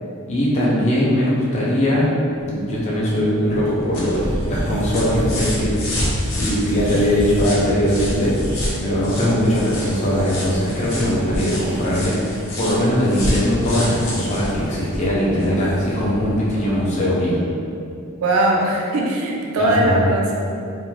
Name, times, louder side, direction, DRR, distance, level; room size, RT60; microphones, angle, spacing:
voice 1, 0.3-2.1 2.4-6.1 6.4-8.4 8.8-12.2 12.6-17.4 19.6-20.0, equal, 30° left, -7 dB, 0.5 m, -20 dB
sound 1, 2.4-17.0, equal, 10° left, 0.8 m, -32 dB
sound 2, 3.6-15.6 16.9-17.0, left 1 dB, 75° left, 0.7 m, -29 dB
voice 2, 18.2-20.3, right 1 dB, 65° right, -1 dB, 0.3 m, -19 dB
2.5 x 2.1 x 3.1 m, 2.5 s
head